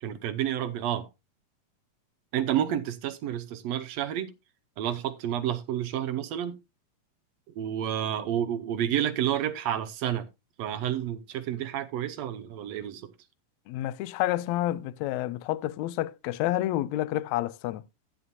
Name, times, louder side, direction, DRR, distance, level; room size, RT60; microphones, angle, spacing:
voice 1, 0.0-1.1 2.3-4.3 4.8-6.6 7.6-10.3 10.6-13.1, right 10 dB, 80° right, 1.5 m, -30 dB
voice 2, 13.7-17.8, left 14 dB, 85° left, 1.6 m, -29 dB
12.5 x 9.1 x 2.7 m
omnidirectional pair, 4.0 m